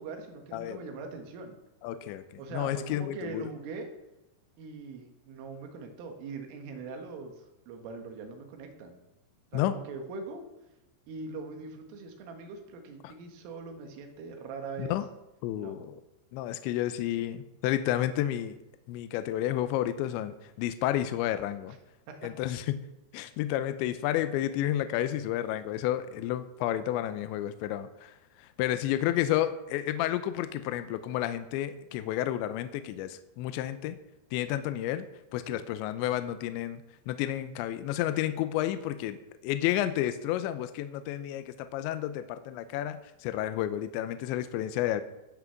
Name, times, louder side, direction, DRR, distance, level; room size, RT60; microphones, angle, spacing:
voice 1, 0.0-1.6 2.4-3.9 4.6-9.0 9.5-10.4 11.1-14.9 15.5-15.8 22.1-22.2 23.2-23.3 35.5-35.6, right 4 dB, 80° right, 5 dB, 4.1 m, -42 dB
voice 2, 1.8-2.2 2.5-3.5 9.5-9.7 13.0-13.1 14.8-15.1 15.4-16.0 16.3-18.6 18.9-21.8 22.2-22.8 23.1-28.1 28.4-34.0 34.3-35.1 35.3-36.8 37.1-39.2 39.4-45.0, left 12 dB, 85° left, 11 dB, 2.6 m, -31 dB
17.5 x 6.1 x 7.1 m, 0.94 s
omnidirectional pair, 5.9 m